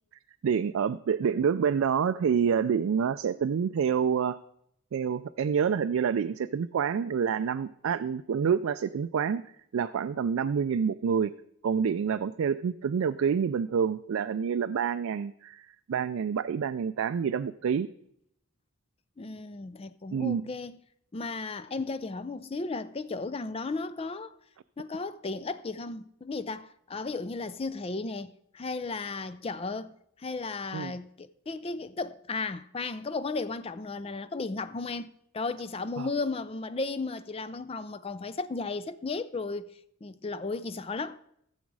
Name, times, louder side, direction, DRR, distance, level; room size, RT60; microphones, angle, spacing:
voice 1, 0.4-4.4 4.9-9.4 9.7-11.3 11.6-17.9 20.1-20.5 30.7-30.9 36.0-36.1, right 7 dB, 70° right, 0.3 m, -27 dB
voice 2, 19.2-20.8 21.1-24.4 24.8-39.7 40.0-41.2, left 3 dB, 25° left, 0.4 m, -35 dB
15.0 x 7.2 x 4.7 m
head